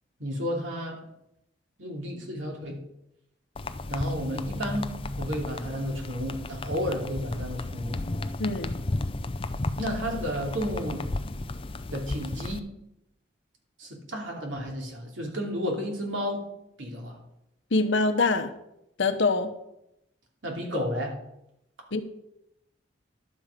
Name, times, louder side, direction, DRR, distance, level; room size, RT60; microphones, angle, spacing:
voice 1, 0.2-1.0 1.8-2.8 3.9-8.0 9.8-11.1 11.9-12.6 13.8-16.4 16.8-17.2 20.4-21.1, equal, 85° right, 0 dB, 2.8 m, -32 dB
sound 1, 3.6-12.6, left 2 dB, 30° left, 0.5 m, -34 dB
voice 2, 8.4-8.7 17.7-18.5 19.0-19.5 21.9-22.0, left 3 dB, 80° left, 8 dB, 1.0 m, -24 dB
11.5 x 7.4 x 5.1 m, 0.82 s
head